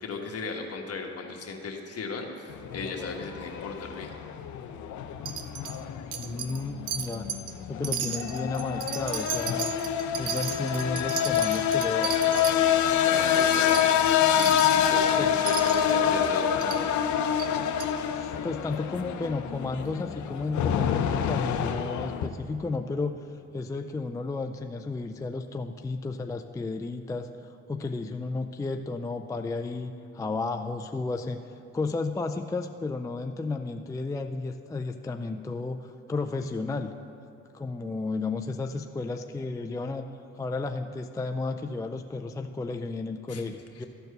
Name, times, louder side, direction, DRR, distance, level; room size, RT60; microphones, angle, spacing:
voice 1, 0.0-4.1 13.0-13.9 14.3-17.0 43.3-43.5 43.7-43.8, left 4 dB, 55° left, 2 dB, 1.4 m, -36 dB
sound 1, 2.5-22.3, left 9 dB, 75° left, 0.6 m, -27 dB
Wind chime, 5.3-5.8 6.1-6.6 6.9-7.5 7.8-12.6 13.0-13.1 13.3-13.8 14.4-14.8 15.5-15.9 16.6-16.8 17.4-17.5 17.8-17.9, right 9 dB, 80° right, 0.8 m, -34 dB
voice 2, 6.1-7.3 7.7-9.7 10.2-12.2 15.2-15.3 18.1-23.3 23.5-36.9 37.5-40.1 40.4-43.9, left 3 dB, 10° left, 5 dB, 0.3 m, -33 dB
13.0 x 4.6 x 6.6 m, 2.6 s
cardioid pair, 90°, 30 cm